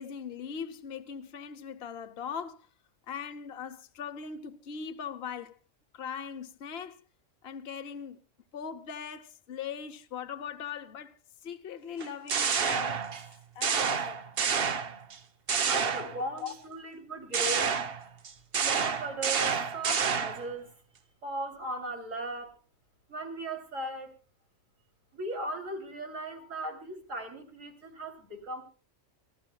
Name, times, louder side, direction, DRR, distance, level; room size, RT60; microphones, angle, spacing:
voice 1, 0.0-2.7 3.1-5.6 5.9-7.0 7.4-8.2 8.5-13.1 13.5-14.2 16.0-16.5 19.4-19.5 26.4-26.5, left 7 dB, 55° left, 1.1 m, -40 dB
sound 1, 12.0-13.3 13.6-15.2 15.5-16.5 17.3-20.5, right 6 dB, 50° right, 1.1 m, -29 dB
voice 2, 15.7-17.9 18.6-20.7 21.2-22.5 23.1-24.1 25.1-28.6, right 1 dB, 85° right, 3.6 m, -38 dB
27.0 x 13.5 x 2.3 m
omnidirectional pair, 1.3 m